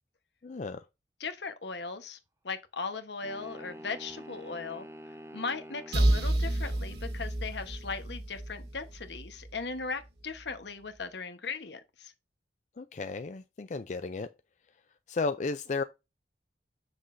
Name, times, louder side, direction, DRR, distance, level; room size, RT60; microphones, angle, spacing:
voice 1, 0.4-0.9 12.8-14.3 15.1-15.8, left 4 dB, 40° left, 0.4 m, -34 dB
voice 2, 1.2-2.2 2.4-4.9 5.3-12.1, left 4 dB, 75° left, 1.1 m, -38 dB
sound 1, 3.2-6.1, equal, 15° right, 0.8 m, -46 dB
sound 2, 5.9-9.6, right 1 dB, 65° right, 1.1 m, -30 dB
7.5 x 6.3 x 2.6 m
head